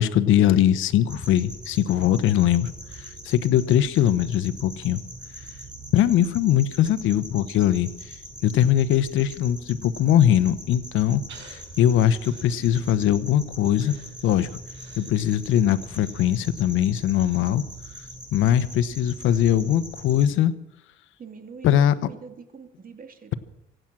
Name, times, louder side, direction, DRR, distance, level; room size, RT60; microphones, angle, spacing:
voice 1, 0.0-5.0 5.9-7.9 8.4-13.9 14.2-14.5 15.0-17.6 18.3-20.5 21.6-21.9, left 11 dB, 90° left, 13 dB, 1.0 m, -21 dB
sound 1, 1.1-20.3, right 1 dB, 20° right, 7.9 m, -42 dB
Breathing, 11.3-13.3 13.7-17.9 18.3-18.4, right 5 dB, 65° right, 6.0 m, -52 dB
voice 2, 21.2-23.4, right 5 dB, 45° right, 6 dB, 2.4 m, -43 dB
25.0 x 9.0 x 6.1 m, 0.85 s
cardioid pair, 90°, 20 cm